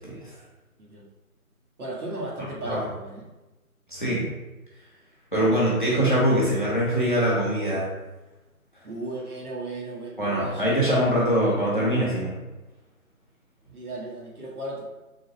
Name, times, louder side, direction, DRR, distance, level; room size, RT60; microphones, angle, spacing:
voice 1, 1.8-3.3 8.8-10.8 13.7-14.8, right 2 dB, 80° right, -3 dB, 1.3 m, -35 dB
voice 2, 3.9-4.3 5.3-7.9 10.2-12.3, equal, 35° left, -7 dB, 0.9 m, -23 dB
3.7 x 2.0 x 4.1 m, 1.1 s
figure-of-eight pair, 180°, 44 cm